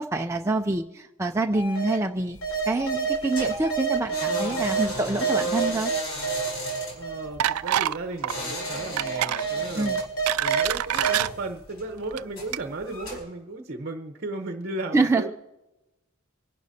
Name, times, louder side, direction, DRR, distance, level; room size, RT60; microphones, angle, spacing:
voice 1, 0.0-2.4 2.6-5.9 9.8-10.0 14.9-15.3, right 2 dB, 15° right, 3 dB, 0.4 m, -26 dB
sound 1, 1.5-2.0 2.4-4.8 5.2-7.6 8.3-10.6 11.0-11.2, right 5 dB, 85° left, 3.3 m, -28 dB
sound 2, 2.3-13.2, equal, 70° left, 4.8 m, -36 dB
voice 2, 6.9-10.0 10.4-15.3, right 2 dB, 50° right, 6 dB, 0.9 m, -35 dB
sound 3, 7.4-8.0 8.2-8.4 9.0-9.4 10.0-11.3 12.0-12.2 12.5-12.6, right 12 dB, 90° right, 0.3 m, -26 dB
25.0 x 11.5 x 2.7 m, 1.0 s
head